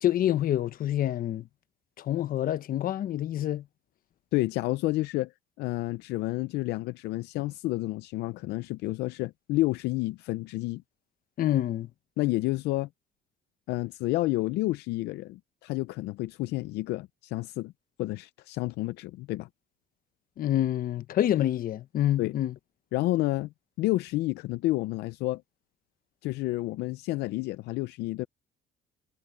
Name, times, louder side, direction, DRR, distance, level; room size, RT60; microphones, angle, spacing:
voice 1, 0.0-1.5 2.0-3.6 11.4-11.9 20.4-22.5, left 12 dB, 60° left, 1.0 m, -27 dB
voice 2, 4.3-5.3 5.6-10.8 12.2-12.9 13.7-17.7 18.0-19.5 22.2-22.3 22.9-23.5 23.8-25.4 26.2-28.3, left 18 dB, 85° left, 0.5 m, -30 dB
cardioid pair, 110°, 17 cm